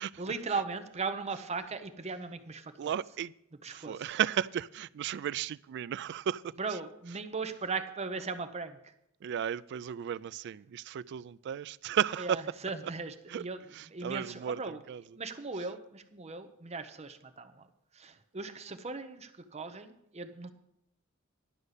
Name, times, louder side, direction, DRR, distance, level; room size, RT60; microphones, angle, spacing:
voice 1, 0.2-2.9 3.6-4.1 6.6-8.9 12.2-13.6 13.9-14.8 15.2-20.5, right 4 dB, 30° right, 0.7 m, -38 dB
voice 2, 2.8-3.3 3.7-6.6 9.2-12.4 13.3-13.5 13.7-15.0, right 9 dB, 55° right, 0.3 m, -34 dB
11.5 x 5.3 x 8.1 m
head